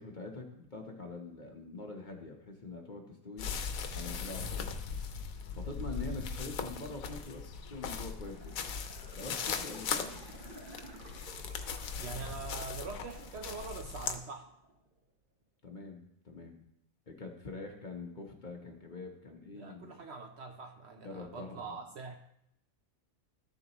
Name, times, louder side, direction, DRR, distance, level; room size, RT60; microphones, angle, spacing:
voice 1, 0.0-3.5 3.9-4.7 5.5-8.6 9.1-10.1 15.6-16.6 17.1-20.0 21.0-21.8, left 3 dB, 35° left, 2 dB, 1.1 m, -44 dB
sound 1, 3.4-14.2, left 6 dB, 80° left, 1.2 m, -39 dB
sound 2, 8.1-15.0 15.4-15.5, right 2 dB, 40° right, 1.3 m, -53 dB
voice 2, 12.0-14.5 19.5-22.2, right 4 dB, 60° right, 4 dB, 0.8 m, -44 dB
13.0 x 7.1 x 3.0 m, 0.77 s
omnidirectional pair, 1.4 m